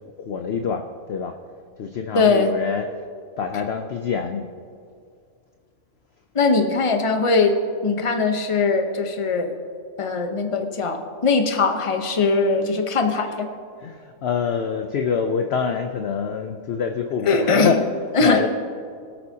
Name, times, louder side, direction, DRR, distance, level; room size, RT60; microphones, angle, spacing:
voice 1, 0.0-1.4 1.8-2.9 3.4-4.5 13.8-18.5, left 6 dB, 60° left, 5 dB, 0.7 m, -26 dB
voice 2, 2.1-2.5 6.3-7.6 7.8-9.5 10.0-13.5 17.2-17.8 18.1-18.4, left 4 dB, 25° left, 5 dB, 0.8 m, -20 dB
23.5 x 8.8 x 2.8 m, 2.3 s
omnidirectional pair, 1.5 m